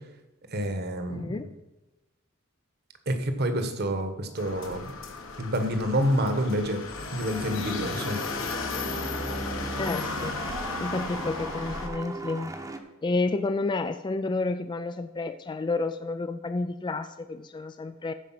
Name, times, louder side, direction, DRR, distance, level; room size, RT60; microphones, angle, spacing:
voice 1, 0.5-1.3 3.1-4.9 5.4-6.8 7.1-8.2, equal, 50° right, 8 dB, 1.3 m, -28 dB
voice 2, 1.1-1.5 9.8-10.3 10.8-12.6 13.0-18.1, left 3 dB, 20° left, 10 dB, 0.3 m, -30 dB
sound 1, 4.4-11.9, left 3 dB, 70° left, 1.4 m, -35 dB
sound 2, 7.3-12.8, right 2 dB, 15° right, 0.9 m, -38 dB
15.0 x 5.0 x 5.8 m, 1.1 s
head